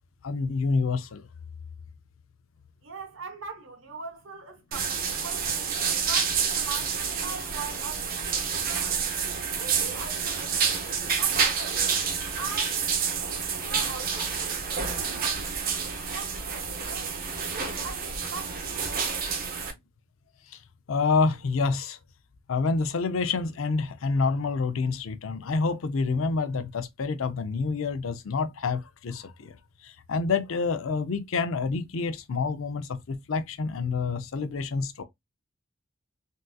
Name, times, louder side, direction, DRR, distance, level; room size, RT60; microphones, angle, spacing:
voice 1, 0.2-1.3 17.5-17.7 20.9-22.0 22.5-29.5 29.8-35.0, left 4 dB, 85° left, 0.5 m, -28 dB
voice 2, 2.8-9.0 9.5-11.8 12.3-13.0 13.5-17.1 17.5-19.3, right 5 dB, 70° right, 0.9 m, -42 dB
sound 1, 4.7-19.7, right 6 dB, 45° right, 0.7 m, -29 dB
3.6 x 2.6 x 2.2 m
head